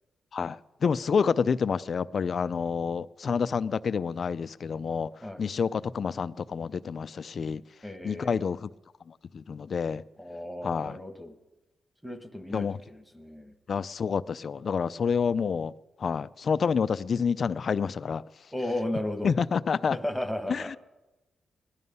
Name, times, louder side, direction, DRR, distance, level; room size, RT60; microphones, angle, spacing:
voice 1, 0.3-5.1 5.4-7.6 8.0-8.7 9.1-10.0 10.6-11.0 12.5-12.8 13.7-15.7 16.0-18.2 19.2-20.0 20.5-20.8, left 6 dB, 45° left, 0.4 m, -28 dB
voice 2, 7.8-8.5 10.2-11.3 12.0-13.5 18.5-19.3 19.9-20.8, left 1 dB, ahead, 1.3 m, -35 dB
18.5 x 11.0 x 5.4 m
cardioid pair, 125°, 0 cm